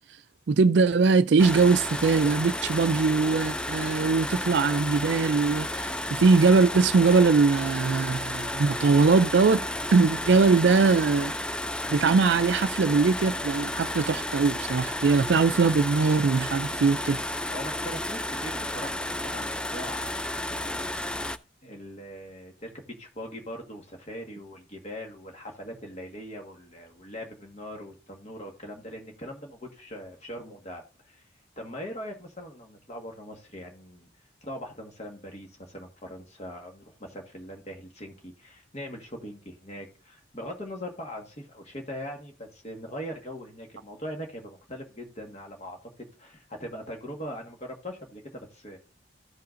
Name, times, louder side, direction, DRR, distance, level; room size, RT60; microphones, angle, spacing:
voice 1, 0.5-9.6 9.9-11.3 11.9-17.2, right 4 dB, 65° right, 0.4 m, -21 dB
sound 1, 1.4-21.4, left 1 dB, 5° left, 0.3 m, -32 dB
voice 2, 17.5-21.1 21.6-31.2 31.6-45.8 46.2-48.8, equal, 35° left, 1.5 m, -41 dB
15.0 x 5.7 x 2.5 m
head